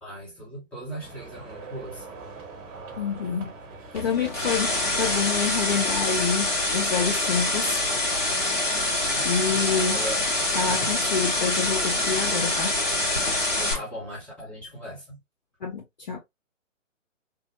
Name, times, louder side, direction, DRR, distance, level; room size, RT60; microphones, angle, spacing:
voice 1, 0.0-2.1 9.1-10.5 13.6-15.2, right 1 dB, 5° left, 0.8 m, -38 dB
sound 1, 1.0-7.0, right 3 dB, 30° right, 1.0 m, -43 dB
voice 2, 3.0-3.5 3.9-7.8 9.2-10.0 10.5-12.7 15.6-16.2, left 6 dB, 35° left, 0.6 m, -27 dB
sound 2, 3.9-13.7, left 2 dB, 70° left, 1.9 m, -25 dB
3.3 x 2.1 x 2.8 m
figure-of-eight pair, 135°, 39 cm